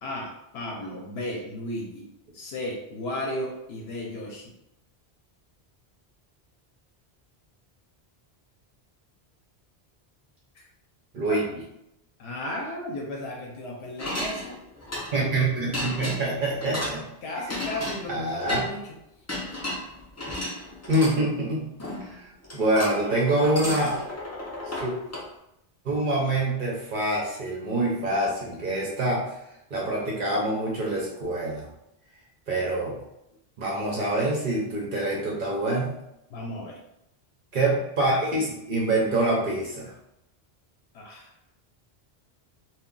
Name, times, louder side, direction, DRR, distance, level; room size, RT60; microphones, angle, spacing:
voice 1, 0.0-4.5 10.5-10.7 12.2-14.6 17.2-18.9 36.3-36.8 40.9-41.3, left 1 dB, 80° left, -1 dB, 0.8 m, -34 dB
sound 1, 14.0-15.3 15.7-17.0 17.5-18.7 19.3-21.2 21.8-22.2 22.4-25.3, left 1 dB, 20° left, 0.4 m, -33 dB
voice 2, 15.1-17.1 18.1-18.6 20.9-21.7 22.0-24.0 24.7-24.9 25.8-29.3 29.7-31.7 32.5-33.0 33.6-36.0 37.5-39.9, right 1 dB, 60° right, -3 dB, 0.7 m, -26 dB
2.2 x 2.2 x 3.7 m, 0.84 s
omnidirectional pair, 1.0 m